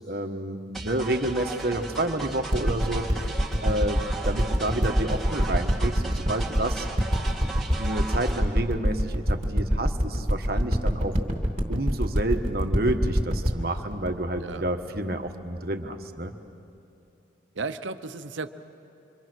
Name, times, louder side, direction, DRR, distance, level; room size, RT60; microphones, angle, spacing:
voice 1, 0.0-3.3 3.6-6.9 7.8-11.2 11.7-16.3, right 1 dB, 50° right, 5 dB, 1.3 m, -29 dB
sound 1, 0.7-8.4, right 3 dB, ahead, 2.1 m, -36 dB
sound 2, 2.5-15.3 15.9-16.0, equal, 35° right, 2.7 m, -25 dB
voice 2, 14.4-14.7 17.5-18.5, right 3 dB, 80° right, 10 dB, 0.9 m, -34 dB
27.0 x 25.0 x 6.3 m, 2.8 s
head